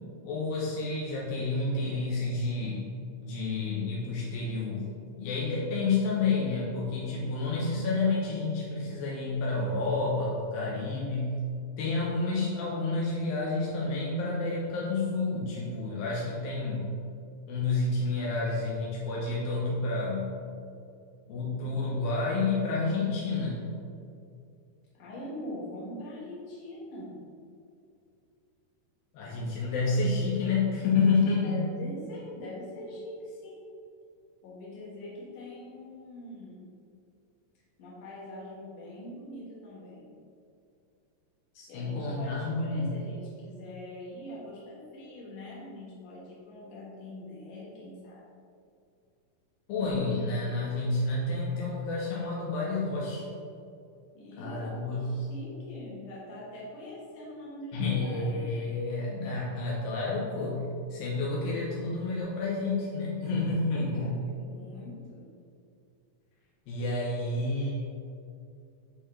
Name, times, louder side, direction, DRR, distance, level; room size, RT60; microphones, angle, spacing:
voice 1, 0.2-2.9 3.2-11.4 11.8-16.9 17.5-20.4 21.3-23.7 29.1-31.6 41.6-42.9 49.7-53.3 54.4-55.2 57.7-64.2 66.7-67.7, left 3 dB, 85° left, -5 dB, 2.7 m, -29 dB
voice 2, 24.9-27.2 31.3-33.7 34.4-36.7 37.8-40.1 41.7-48.2 54.1-58.5 64.0-65.3, left 1 dB, 65° left, -6 dB, 2.9 m, -43 dB
10.5 x 4.0 x 3.2 m, 2.5 s
omnidirectional pair, 4.1 m